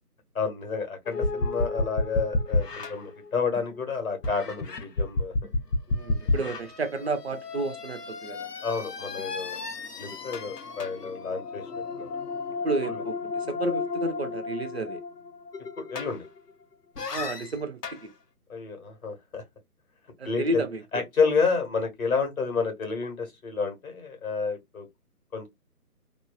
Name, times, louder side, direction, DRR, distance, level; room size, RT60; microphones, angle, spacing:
voice 1, 0.3-5.5 8.6-9.6 10.0-12.1 12.8-13.0 15.8-16.2 18.5-19.4 20.2-20.6 20.9-24.9 25.3-25.5, left 5 dB, 60° left, 1.4 m, -30 dB
sound 1, 1.1-3.8 4.2-16.5 17.0-18.0, left 3 dB, 80° left, 0.8 m, -32 dB
voice 2, 5.9-8.5 12.6-13.2 13.5-15.0 17.1-18.1 20.2-21.0, right 2 dB, 40° right, 0.6 m, -31 dB
3.0 x 2.3 x 2.3 m
figure-of-eight pair, 150°, 47 cm